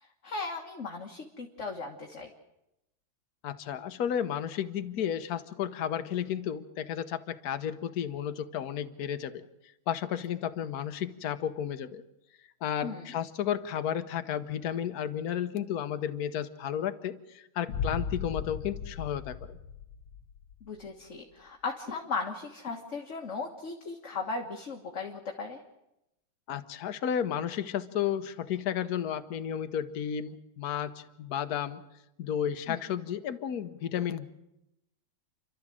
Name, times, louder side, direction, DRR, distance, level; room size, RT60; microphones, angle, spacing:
voice 1, 0.2-2.3 12.8-13.1 20.6-25.6 32.7-32.8, left 4 dB, 40° left, 1 dB, 1.7 m, -37 dB
voice 2, 3.4-9.4 9.9-12.0 12.6-19.6 26.5-31.8 32.2-34.3, left 9 dB, 55° left, 9 dB, 1.4 m, -33 dB
Boom, 17.7-20.7, left 6 dB, 75° left, 1.7 m, -36 dB
30.0 x 12.5 x 7.6 m, 0.88 s
omnidirectional pair, 2.2 m